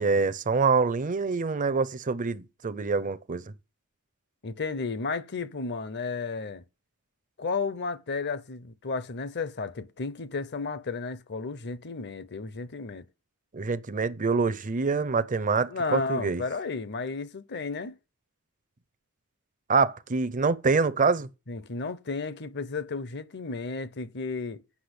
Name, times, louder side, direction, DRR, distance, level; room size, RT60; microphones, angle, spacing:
voice 1, 0.0-3.5 13.5-16.4 19.7-21.3, right 4 dB, 35° right, 0.6 m, -25 dB
voice 2, 4.4-6.6 7.4-13.1 15.7-18.0 21.5-24.6, left 4 dB, 50° left, 0.8 m, -33 dB
8.5 x 5.9 x 7.9 m
head